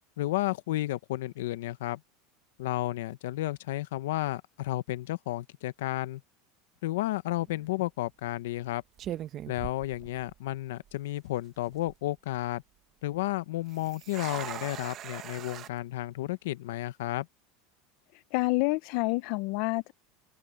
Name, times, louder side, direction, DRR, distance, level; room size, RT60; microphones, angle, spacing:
voice 1, 0.2-2.0 2.6-6.2 6.8-8.8 9.5-12.6 13.0-17.3, left 16 dB, 85° left, 0.9 m, -32 dB
sound 1, 7.4-7.7 8.5-8.7 9.0-10.6 10.9-11.0 11.6-12.0 13.7-15.7, right 12 dB, 40° right, 0.9 m, -41 dB
voice 2, 18.3-19.9, left 23 dB, 60° left, 0.6 m, -28 dB
open air
supercardioid pair, 135°, 0 cm